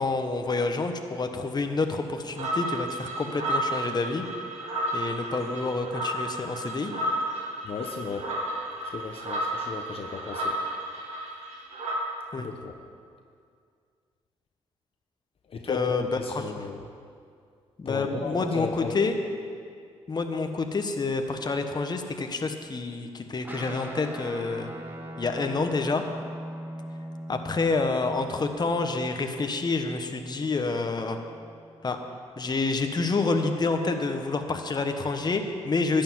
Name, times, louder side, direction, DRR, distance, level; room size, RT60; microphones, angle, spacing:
voice 1, 0.0-4.2 4.9-6.9 12.3-12.5 15.7-16.7 17.8-19.2 20.1-24.7 25.2-26.0 27.3-31.2 31.8-32.0 32.4-36.0, left 3 dB, 35° left, 5 dB, 1.3 m, -28 dB
sound 1, 2.4-12.0, right 1 dB, 80° right, 2.2 m, -32 dB
voice 2, 7.6-8.3 8.9-10.6 12.4-12.7 15.5-16.8 17.9-19.0, left 4 dB, 55° left, 2 dB, 1.1 m, -34 dB
Guitar, 23.4-32.2, right 1 dB, 15° right, 1.5 m, -41 dB
11.5 x 6.9 x 9.4 m, 2.2 s
supercardioid pair, 60°, 12 cm